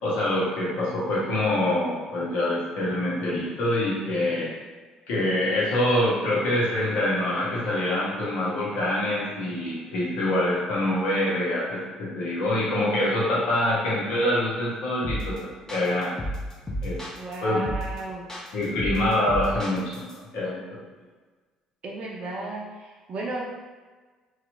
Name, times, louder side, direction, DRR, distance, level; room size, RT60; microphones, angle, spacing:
voice 1, 0.0-4.5 5.1-16.1 16.8-17.0 17.4-17.6 18.5-20.6, left 1 dB, 70° left, -6 dB, 0.9 m, -25 dB
voice 2, 4.0-4.3 17.2-18.2 21.8-23.5, right 2 dB, 50° right, -2 dB, 0.5 m, -34 dB
sound 1, 15.0-15.4 15.7-17.4 17.7-18.0 18.3-20.1, equal, 25° left, 0.7 m, -32 dB
2.8 x 2.4 x 2.5 m, 1.4 s
hypercardioid pair, 55°, 2 cm